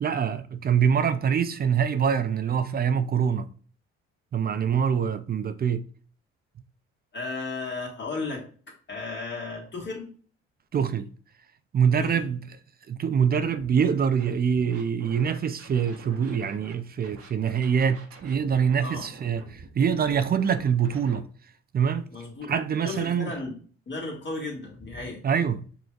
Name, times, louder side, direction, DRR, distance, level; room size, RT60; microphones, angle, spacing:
voice 1, 0.0-3.5 4.3-5.8 10.7-11.1 11.7-12.4 12.9-21.2 21.7-22.1 22.5-23.3 25.2-25.6, right 7 dB, 30° right, 0.5 m, -24 dB
voice 2, 7.1-8.4 8.9-10.1 12.0-12.3 18.8-19.1 22.1-22.5 22.8-23.6 23.9-25.2, left 3 dB, 40° left, 2.0 m, -34 dB
Scratching (performance technique), 13.5-13.8 14.2-16.7 17.0-21.2, right 4 dB, 50° right, 1.1 m, -47 dB
5.1 x 3.0 x 2.4 m
hypercardioid pair, 60°, 29 cm